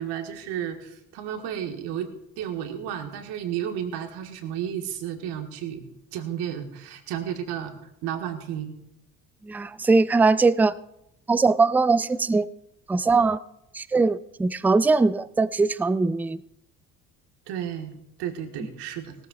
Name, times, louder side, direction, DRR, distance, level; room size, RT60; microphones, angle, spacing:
voice 1, 0.0-2.1 2.4-5.8 6.1-8.7 17.5-19.3, right 9 dB, 70° right, 6 dB, 1.7 m, -32 dB
voice 2, 9.4-10.7 11.3-12.5 12.9-13.4 13.7-16.4, right 3 dB, 5° right, 17 dB, 0.3 m, -21 dB
18.5 x 14.0 x 2.4 m, 0.80 s
hypercardioid pair, 55°, 41 cm